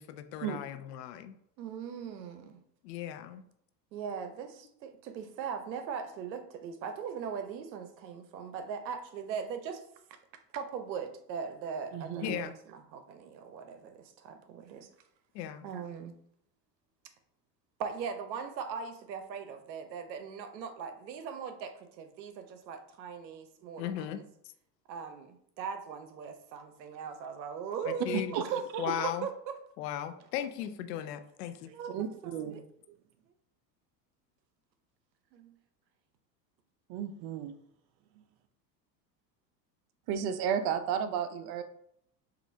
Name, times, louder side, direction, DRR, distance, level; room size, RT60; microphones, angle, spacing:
voice 1, 0.0-1.3 2.8-3.4 12.2-12.5 15.3-15.6 23.8-24.2 27.9-28.3 28.8-29.2 29.8-31.7, left 10 dB, 75° left, 10 dB, 0.6 m, -36 dB
voice 2, 1.6-2.6 3.9-9.8 10.5-14.9 15.6-16.2 17.8-24.2 24.9-28.5 29.0-29.6 31.7-32.0 32.2-32.6 35.3-35.5, right 6 dB, 90° right, 8 dB, 0.7 m, -40 dB
voice 3, 11.9-12.4 28.1-29.1 31.9-32.6 36.9-37.6 40.1-41.6, right 8 dB, 50° right, 9 dB, 0.5 m, -33 dB
4.8 x 2.5 x 2.6 m, 0.71 s
hypercardioid pair, 90°, 50 cm